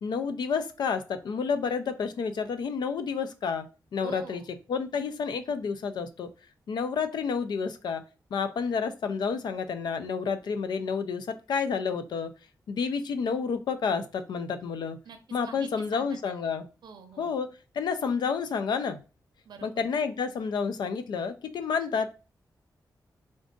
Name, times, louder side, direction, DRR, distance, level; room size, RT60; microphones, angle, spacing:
voice 1, 0.0-3.7 3.9-4.4 4.7-6.3 6.7-8.0 8.3-12.3 12.7-15.0 15.3-16.7 17.2-17.5 17.7-19.0 19.6-22.1, left 5 dB, 85° left, 9 dB, 0.4 m, -30 dB
voice 2, 4.0-4.5 15.0-15.2 15.4-16.6 16.8-17.4 19.5-19.9, right 5 dB, 85° right, 6 dB, 0.5 m, -46 dB
3.5 x 2.5 x 3.7 m, 0.33 s
wide cardioid pair, 155°, 7 cm